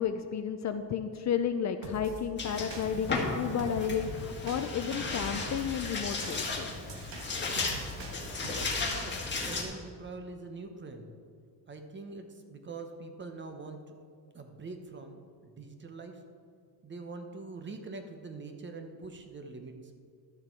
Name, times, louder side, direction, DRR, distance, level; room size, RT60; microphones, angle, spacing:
voice 1, 0.0-6.7, left 8 dB, 40° left, 8 dB, 0.5 m, -32 dB
sound 1, 1.8-2.2 2.7-3.2 3.6-4.0 4.5-5.7 6.2-8.9, right 3 dB, 80° right, 1.6 m, -44 dB
sound 2, 2.4-9.6, left 3 dB, 25° left, 1.5 m, -35 dB
voice 2, 8.8-11.1 11.7-13.8 14.3-16.2 16.8-19.7, right 3 dB, 25° right, 6 dB, 0.9 m, -44 dB
12.0 x 6.7 x 4.5 m, 2.2 s
cardioid pair, 130°, 42 cm